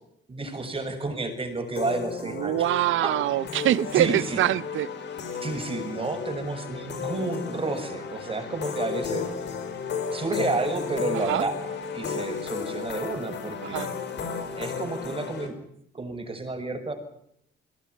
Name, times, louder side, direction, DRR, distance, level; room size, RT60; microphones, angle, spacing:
voice 1, 0.3-3.2 3.9-4.4 5.4-9.3 10.1-11.5 11.9-13.9 14.6-15.5 15.9-16.9, right 3 dB, 30° right, 6 dB, 7.3 m, -31 dB
sound 1, 1.8-15.5, left 6 dB, 60° left, 5.2 m, -34 dB
voice 2, 2.4-4.9 11.3-11.4 13.6-13.9, right 14 dB, 80° right, 20 dB, 0.9 m, -24 dB
21.5 x 18.0 x 9.8 m, 0.74 s
cardioid pair, 90°, 20 cm